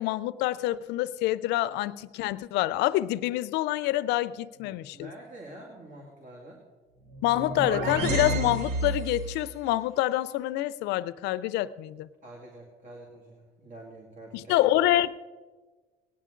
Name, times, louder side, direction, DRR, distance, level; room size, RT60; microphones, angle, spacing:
voice 1, 0.0-5.1 7.2-12.1 14.3-15.1, left 15 dB, 90° left, 17 dB, 0.5 m, -27 dB
voice 2, 4.5-6.6 12.2-14.6, right 1 dB, 50° right, 0 dB, 2.4 m, -47 dB
sound 1, 7.1-9.4, right 2 dB, 80° right, 1.1 m, -30 dB
18.0 x 10.5 x 3.8 m, 1.3 s
cardioid pair, 110°, 17 cm